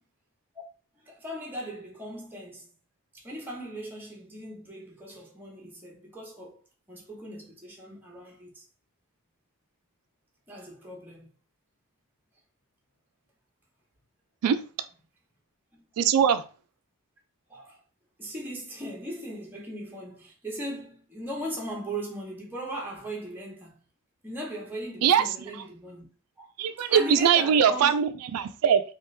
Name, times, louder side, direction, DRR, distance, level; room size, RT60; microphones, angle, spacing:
voice 1, 1.0-2.7 3.1-6.6 6.9-8.6 10.5-11.3 15.7-15.8 17.5-17.8 18.2-23.8 24.2-26.1 26.4-26.5 26.9-27.9, right 1 dB, 10° right, 0.9 m, -38 dB
voice 2, 16.0-16.4 25.0-25.2 26.6-28.8, right 7 dB, 85° right, 0.3 m, -21 dB
3.1 x 2.4 x 3.2 m
head